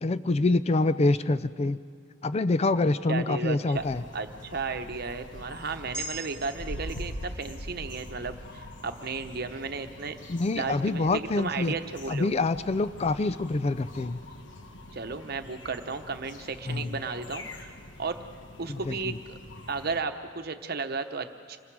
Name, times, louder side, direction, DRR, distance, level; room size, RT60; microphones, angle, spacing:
voice 1, 0.0-1.8 2.2-4.0 10.3-11.7 12.1-14.2 16.7-17.0 18.7-19.1, left 2 dB, 35° left, 14 dB, 0.4 m, -26 dB
voice 2, 3.1-3.8 4.1-10.2 10.5-12.3 14.9-17.7 18.0-18.2 18.6-19.4 19.7-21.6, right 4 dB, 55° right, 7 dB, 1.0 m, -34 dB
sound 1, 3.7-20.0, left 1 dB, 75° left, 1.3 m, -44 dB
sound 2, 5.9-10.4 10.8-11.0, right 1 dB, 15° right, 2.2 m, -45 dB
27.0 x 21.0 x 4.8 m, 2.2 s
head